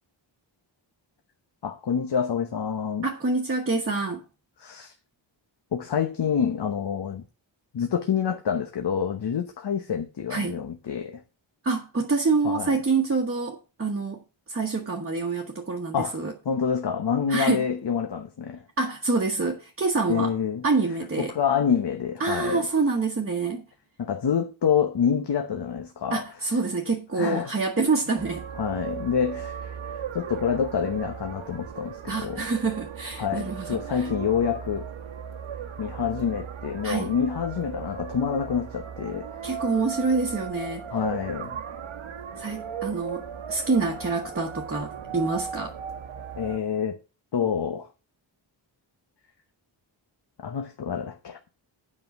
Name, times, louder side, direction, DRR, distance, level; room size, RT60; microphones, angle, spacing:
voice 1, 1.6-3.1 4.6-4.9 5.7-7.2 7.7-11.2 12.4-12.7 15.9-16.2 16.4-18.6 20.1-20.6 21.2-22.7 24.0-26.2 27.2-27.5 28.6-32.5 33.2-34.9 35.8-39.3 40.9-41.6 46.4-47.0 47.3-47.9 50.4-51.5, left 7 dB, 60° left, 1.0 m, -27 dB
voice 2, 3.0-4.2 10.3-10.6 11.6-14.2 14.5-16.3 17.3-17.7 18.8-20.4 20.6-21.3 22.2-23.6 26.1-28.4 32.1-34.1 36.8-37.1 39.4-40.9 42.4-45.8, right 4 dB, 30° right, 1.3 m, -26 dB
sound 1, 28.2-46.6, right 7 dB, 85° right, 1.3 m, -37 dB
8.7 x 5.5 x 7.0 m
wide cardioid pair, 145°, 47 cm